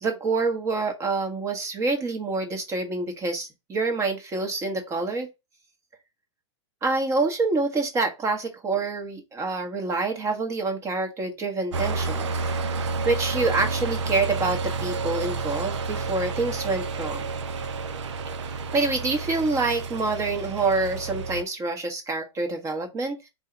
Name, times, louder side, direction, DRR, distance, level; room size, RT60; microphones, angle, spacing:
voice 1, 0.0-5.3 6.8-12.3 13.0-17.3 18.4-23.3, right 3 dB, 20° right, 1.1 m, -27 dB
sound 1, 11.7-21.4, right 4 dB, 80° right, 0.6 m, -30 dB
3.9 x 2.7 x 4.5 m
hypercardioid pair, 135°, 15 cm